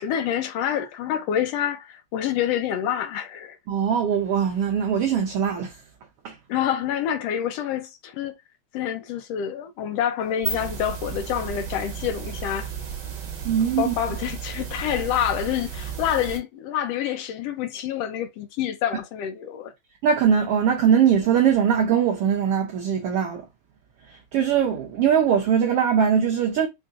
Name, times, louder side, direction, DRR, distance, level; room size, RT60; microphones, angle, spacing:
voice 1, 0.0-3.6 6.5-8.3 8.7-12.7 13.6-19.7, left 10 dB, 75° left, 1.5 m, -27 dB
voice 2, 3.7-5.8 6.2-6.4 13.4-13.9 20.0-23.5 24.1-26.7, right 8 dB, 75° right, 1.3 m, -21 dB
sound 1, 10.2-16.4, right 7 dB, 45° right, 1.7 m, -34 dB
5.3 x 2.6 x 2.5 m
omnidirectional pair, 3.4 m